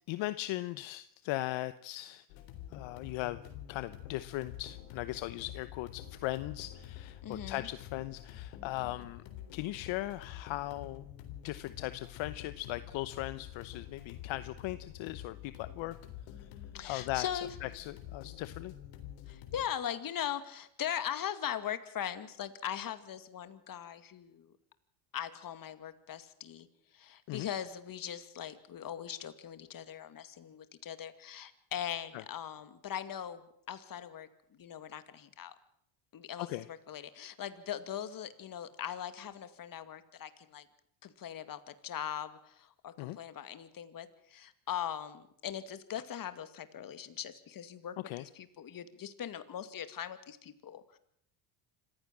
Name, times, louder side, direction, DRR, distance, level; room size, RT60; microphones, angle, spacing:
voice 1, 0.1-2.3 2.7-3.4 3.7-9.2 9.5-11.1 11.4-16.0 16.4-16.5 16.8-17.3 17.6-18.7 27.3-27.5 32.1-32.2 36.4-36.7 43.0-43.2 48.1-48.3, left 17 dB, 65° left, 14 dB, 1.1 m, -38 dB
sound 1, 2.3-19.7, left 11 dB, 80° left, 3.8 m, -48 dB
voice 2, 7.2-7.7 16.7-17.5 19.3-24.5 25.1-26.7 26.9-34.3 34.6-35.5 36.1-40.7 41.0-51.0, left 9 dB, 40° left, 12 dB, 2.3 m, -40 dB
26.5 x 15.5 x 7.6 m, 0.73 s
cardioid pair, 110°, 50 cm